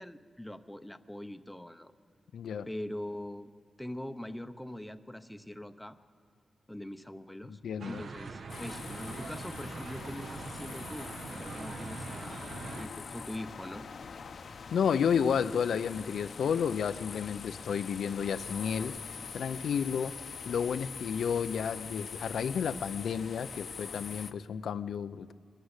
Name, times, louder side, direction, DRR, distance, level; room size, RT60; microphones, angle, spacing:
voice 1, 0.0-1.9 2.7-3.5 3.8-6.0 6.7-7.6 7.8-12.5 12.8-13.9, left 1 dB, 5° left, 9 dB, 0.8 m, -42 dB
voice 2, 2.3-2.7 7.5-8.0 14.7-19.0 19.3-20.2 20.5-25.3, left 7 dB, 90° left, 11 dB, 0.6 m, -31 dB
sound 1, 7.8-12.9, right 4 dB, 60° right, 1.0 m, -43 dB
sound 2, 8.5-24.3, left 5 dB, 60° left, 0.8 m, -44 dB
23.5 x 13.0 x 9.8 m, 2.4 s
wide cardioid pair, 130°, 0 cm